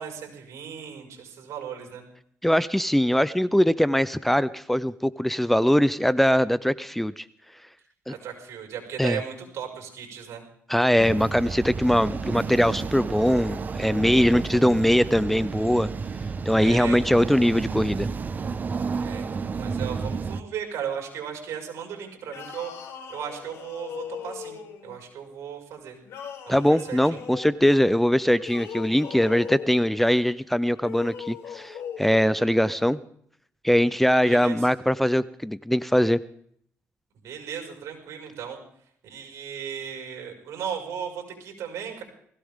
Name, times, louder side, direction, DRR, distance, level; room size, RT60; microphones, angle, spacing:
voice 1, 0.0-2.0 8.1-10.4 16.6-17.2 19.0-22.7 23.1-24.6 24.8-26.0 26.5-27.2 34.3-34.6 37.2-38.6 39.0-42.0, right 8 dB, 80° right, 2 dB, 5.6 m, -36 dB
voice 2, 2.4-7.2 8.1-8.2 9.0-9.2 10.7-15.9 16.5-18.1 26.5-33.0 33.6-36.2, equal, 5° left, 17 dB, 0.5 m, -22 dB
sound 1, 11.0-20.4, right 5 dB, 35° right, 0.8 m, -31 dB
sound 2, 22.2-25.0 26.0-27.6 28.3-29.9 30.7-32.2, left 7 dB, 80° left, 4.1 m, -39 dB
20.5 x 16.5 x 3.6 m, 0.66 s
cardioid pair, 115°, 5 cm